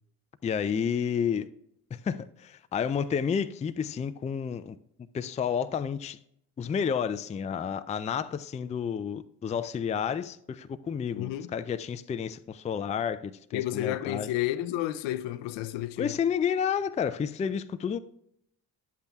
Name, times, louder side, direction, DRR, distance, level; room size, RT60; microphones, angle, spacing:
voice 1, 0.4-1.5 1.9-4.8 5.1-6.2 6.6-14.3 16.0-18.0, left 7 dB, 15° left, 0.4 m, -30 dB
voice 2, 11.2-11.5 13.5-16.2, left 14 dB, 70° left, 0.6 m, -31 dB
10.5 x 8.2 x 2.3 m
hypercardioid pair, 45°, 46 cm